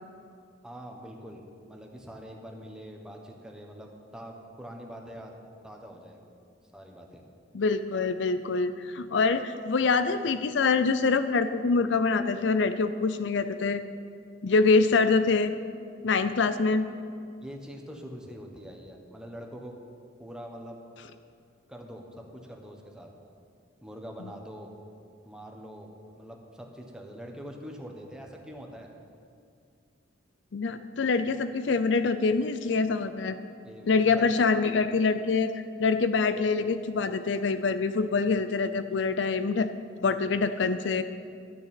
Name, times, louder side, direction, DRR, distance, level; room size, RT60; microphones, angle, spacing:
voice 1, 0.6-5.4 5.6-6.2 6.7-7.2 17.4-19.8 20.2-20.8 21.7-23.1 23.8-24.7 25.2-28.9 33.6-34.3, equal, 5° right, 1 dB, 1.3 m, -44 dB
voice 2, 7.5-13.8 14.4-15.6 16.0-16.9 30.5-33.4 33.9-39.7 40.0-41.0, left 4 dB, 65° left, 11 dB, 0.5 m, -25 dB
12.5 x 6.6 x 9.0 m, 2.3 s
head